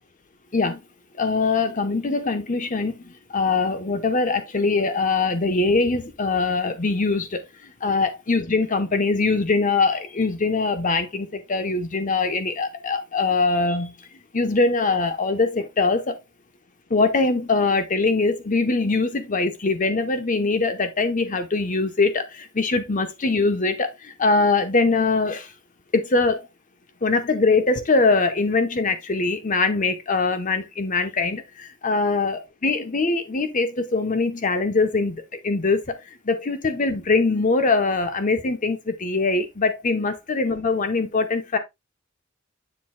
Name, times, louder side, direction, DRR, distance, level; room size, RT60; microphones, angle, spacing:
voice 1, 1.2-14.1 14.3-16.2 16.9-25.5 25.9-26.5 27.0-36.0 36.2-41.6, left 3 dB, 40° left, 0.9 m, -22 dB
7.7 x 6.9 x 2.2 m
head